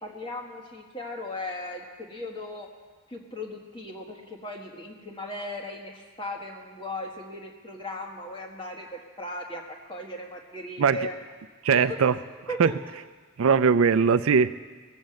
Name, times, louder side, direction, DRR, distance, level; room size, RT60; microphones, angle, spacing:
voice 1, 0.0-2.7 3.1-11.1 11.7-12.1 12.5-12.7, left 1 dB, 25° left, 1 dB, 1.5 m, -37 dB
voice 2, 11.6-12.2 12.6-12.7 13.4-14.6, right 6 dB, 80° right, 13 dB, 0.4 m, -20 dB
19.5 x 7.2 x 7.7 m, 1.5 s
head